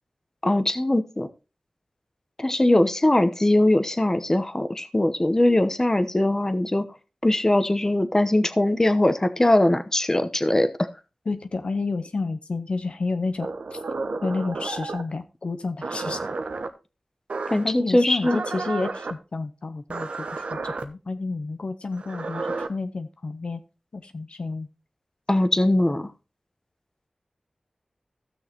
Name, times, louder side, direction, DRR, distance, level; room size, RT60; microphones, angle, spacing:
voice 1, 0.4-1.3 2.4-6.8 7.2-10.9 17.5-18.4 25.3-26.1, left 1 dB, 25° left, 10 dB, 0.9 m, -21 dB
voice 2, 11.3-13.8 14.2-16.2 17.6-23.6 23.9-24.7, left 3 dB, 65° left, 9 dB, 0.7 m, -30 dB
sound 1, 13.4-15.1 15.8-16.7 17.3-17.7 18.2-19.1 19.9-20.8 21.9-22.7, right 3 dB, 85° right, 0.9 m, -31 dB
15.5 x 6.4 x 2.9 m, 0.30 s
wide cardioid pair, 60°, 2 cm